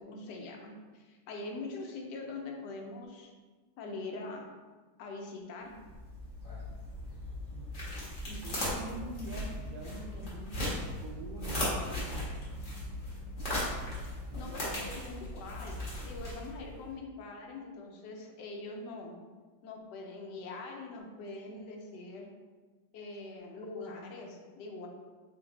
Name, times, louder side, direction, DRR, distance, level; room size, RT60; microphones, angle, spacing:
voice 1, 0.0-3.3 3.8-4.5 5.0-5.7 8.3-8.4 14.4-15.8 16.0-19.2 19.6-22.3 22.9-24.9, left 3 dB, 75° left, 1 dB, 1.2 m, -43 dB
sound 1, 5.7-16.8, left 1 dB, 35° left, 1.0 m, -38 dB
voice 2, 7.5-7.9 8.4-12.1 14.2-14.8, right 1 dB, 70° right, -2 dB, 1.0 m, -45 dB
3.2 x 2.6 x 3.8 m, 1.4 s
omnidirectional pair, 1.9 m